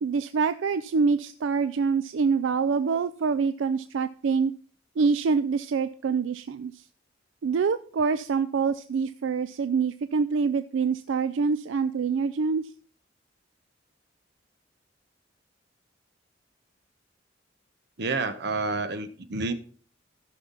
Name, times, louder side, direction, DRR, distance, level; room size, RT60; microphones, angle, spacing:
voice 1, 0.0-4.5 5.0-6.8 7.4-12.7, right 5 dB, 80° right, 12 dB, 0.4 m, -25 dB
voice 2, 18.0-19.5, right 3 dB, 60° right, 10 dB, 1.0 m, -29 dB
15.0 x 5.8 x 4.0 m, 0.43 s
head